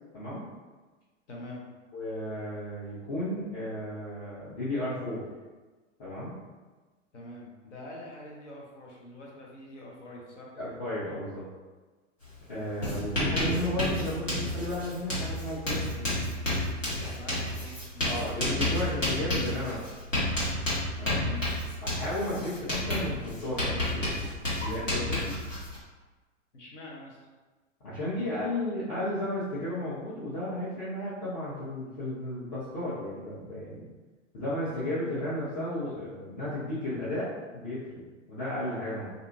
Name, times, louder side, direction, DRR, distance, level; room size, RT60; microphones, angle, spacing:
voice 1, 0.1-0.5 1.9-5.2 6.0-6.4 10.5-11.5 12.5-16.1 18.0-19.8 21.0-21.3 21.8-24.3 24.6-25.4 27.8-33.8 34.3-39.1, left 1 dB, 40° left, -11 dB, 0.9 m, -34 dB
voice 2, 1.3-1.6 7.1-10.5 17.1-18.1 21.2-21.5 26.5-27.3, left 1 dB, 70° left, -2 dB, 0.9 m, -45 dB
Writing, 12.2-12.4 12.6-25.8, left 1 dB, 85° left, 1.4 m, -31 dB
2.6 x 2.5 x 2.7 m, 1.3 s
figure-of-eight pair, 100°, 38 cm